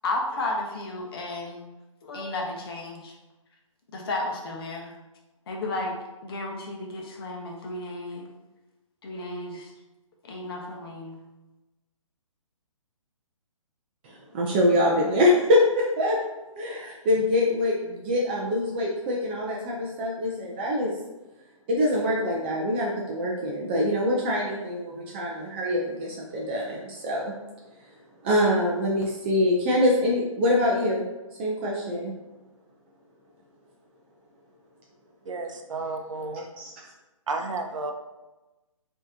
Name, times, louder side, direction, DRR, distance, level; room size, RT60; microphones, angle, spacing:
voice 1, 0.0-1.7 2.0-3.1 3.9-4.9 5.5-6.0 6.2-8.3 9.0-9.7 10.2-11.2, left 2 dB, 45° left, 0 dB, 0.9 m, -33 dB
voice 2, 14.0-16.2 16.6-21.0 21.7-27.3 28.2-31.0 31.4-32.1 36.6-36.7, left 1 dB, 20° right, -3 dB, 0.4 m, -24 dB
voice 3, 35.3-36.5 37.3-37.9, right 3 dB, 65° right, 4 dB, 0.6 m, -32 dB
4.7 x 2.8 x 2.7 m, 1.1 s
figure-of-eight pair, 140°, 18 cm